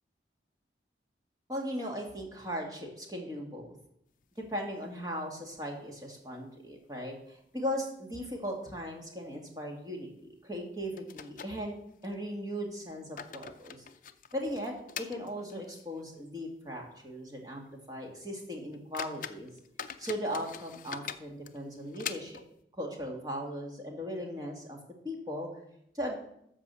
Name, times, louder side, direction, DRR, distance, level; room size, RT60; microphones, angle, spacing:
voice 1, 1.5-3.7 4.5-10.1 10.4-11.8 12.0-13.8 14.3-19.5 20.0-22.4 22.8-24.8 25.0-25.5 25.9-26.2, equal, 20° right, 1 dB, 2.1 m, -38 dB
sound 1, 4.2-5.2 5.5-5.6 6.0-6.1 6.7-7.2 7.5-7.6 8.2-8.4 8.7-8.9 10.2-10.3 11.0-12.2 12.8-16.0 16.4-16.5 17.0-17.1 17.6-17.7 18.3-18.4 18.7-22.6, left 8 dB, 45° left, 0.5 m, -44 dB
13.0 x 5.0 x 6.9 m, 0.74 s
head